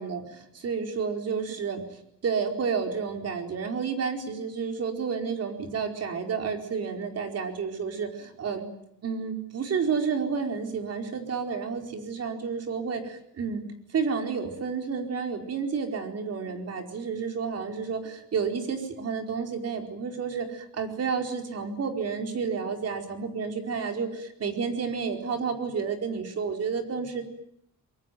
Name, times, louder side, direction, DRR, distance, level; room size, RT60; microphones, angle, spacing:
voice 1, 0.0-1.8 2.2-8.6 9.0-13.6 13.9-27.2, right 5 dB, 50° right, 5 dB, 4.7 m, -30 dB
24.5 x 23.5 x 9.4 m, 0.72 s
cardioid pair, 140°, 32 cm